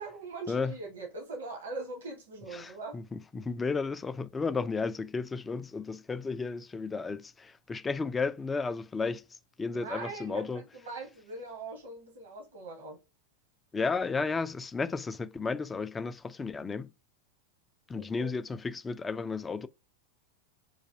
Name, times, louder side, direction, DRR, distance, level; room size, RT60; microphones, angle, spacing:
voice 1, 0.0-3.0 9.7-13.0 17.9-18.3, right 3 dB, 65° right, 1.2 m, -41 dB
voice 2, 2.5-9.2 9.6-10.6 13.7-16.9 17.9-19.7, left 4 dB, 15° left, 0.3 m, -33 dB
3.9 x 2.6 x 2.5 m
figure-of-eight pair, 90°, 0 cm